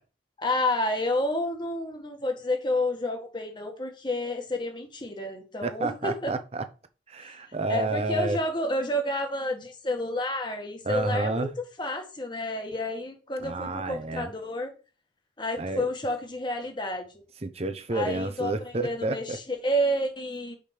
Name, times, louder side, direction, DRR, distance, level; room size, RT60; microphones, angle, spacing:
voice 1, 0.4-6.3 7.2-7.4 7.7-11.5 11.8-14.7 15.4-17.1 17.9-20.5, left 1 dB, 25° left, 1.5 m, -30 dB
voice 2, 5.6-6.7 7.1-8.4 10.8-11.5 13.4-14.3 15.6-15.9 17.4-19.4, right 2 dB, 35° right, 0.8 m, -30 dB
5.2 x 5.1 x 5.8 m
head